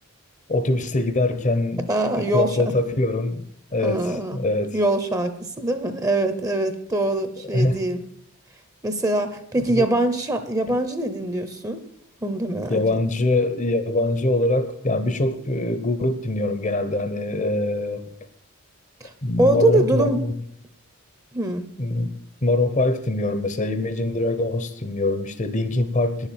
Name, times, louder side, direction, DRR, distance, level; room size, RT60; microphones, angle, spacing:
voice 1, 0.5-1.9 2.2-3.5 3.7-4.8 7.5-7.8 9.8-9.9 10.7-10.8 12.7-18.0 19.2-20.3 21.8-22.1 22.4-26.3, left 2 dB, 35° left, 0.8 m, -23 dB
voice 2, 1.9-2.6 3.8-4.4 4.7-8.0 8.8-11.8 12.2-12.8 19.0-20.2 21.3-21.7, right 1 dB, 15° right, 0.8 m, -23 dB
10.5 x 7.3 x 8.9 m
head